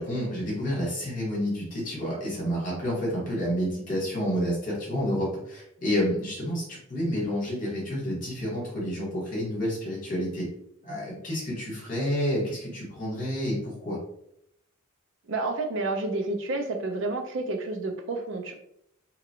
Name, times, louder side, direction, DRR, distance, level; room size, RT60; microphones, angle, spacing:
voice 1, 0.0-10.5 10.8-14.0, equal, 40° left, -4 dB, 1.3 m, -29 dB
voice 2, 15.3-18.5, right 2 dB, 60° right, 4 dB, 0.5 m, -30 dB
2.8 x 2.5 x 2.7 m, 0.74 s
head